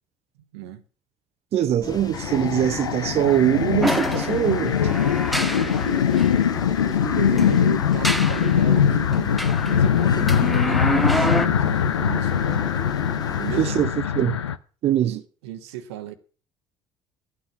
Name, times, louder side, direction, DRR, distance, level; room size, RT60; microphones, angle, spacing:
voice 1, 1.5-4.9 13.6-13.9 14.1-14.4 14.8-15.2, right 11 dB, 50° right, 0.8 m, -22 dB
sound 1, 1.8-13.6, left 4 dB, 30° left, 1.7 m, -35 dB
sound 2, 2.1-14.6, left 8 dB, 85° left, 0.5 m, -22 dB
sound 3, 3.8-6.3 7.3-8.6 9.1-11.5, equal, ahead, 0.9 m, -27 dB
voice 2, 5.4-6.2 6.8-12.7 13.3-13.8 15.1-16.1, right 12 dB, 75° right, 1.1 m, -35 dB
12.5 x 9.2 x 6.0 m
hypercardioid pair, 60°, 14 cm